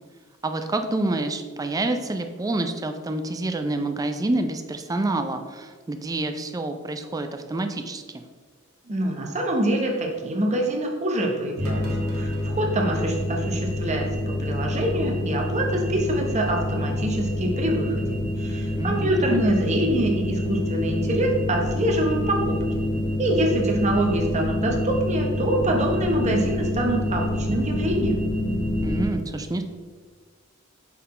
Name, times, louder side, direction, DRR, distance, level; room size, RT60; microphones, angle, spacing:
voice 1, 0.4-8.2 18.7-19.5 28.8-29.6, right 2 dB, 15° right, 7 dB, 0.4 m, -28 dB
voice 2, 8.9-22.8 23.2-28.3, right 1 dB, 35° right, 1 dB, 0.9 m, -25 dB
sound 1, 11.6-29.0, left 1 dB, 85° right, 1.5 m, -27 dB
5.6 x 4.1 x 4.2 m, 1.5 s
head